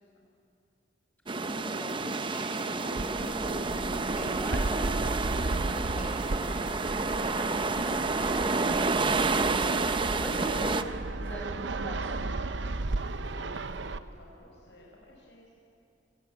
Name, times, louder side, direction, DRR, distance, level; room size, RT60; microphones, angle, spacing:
voice 1, 1.3-10.9 11.2-12.3, equal, 10° left, -1 dB, 5.8 m, -41 dB
sound 1, 1.3-10.8, right 3 dB, 25° right, 0.7 m, -29 dB
sound 2, 1.7-6.9, right 4 dB, 50° right, 5.6 m, -54 dB
Fixed-wing aircraft airplane, 3.0-14.0, right 2 dB, 85° right, 0.8 m, -35 dB
voice 2, 12.9-15.5, left 1 dB, 70° left, -3 dB, 5.3 m, -53 dB
26.5 x 20.0 x 8.4 m, 2.5 s
head